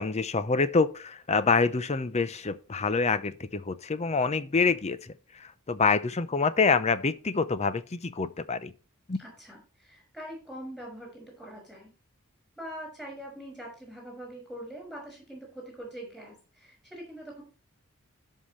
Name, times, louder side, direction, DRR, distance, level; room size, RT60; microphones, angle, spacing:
voice 1, 0.0-8.7 9.1-9.2, left 4 dB, 30° left, 0.6 m, -26 dB
voice 2, 9.2-11.9 12.6-17.4, right 1 dB, 5° left, 6.2 m, -43 dB
16.5 x 5.7 x 3.2 m
head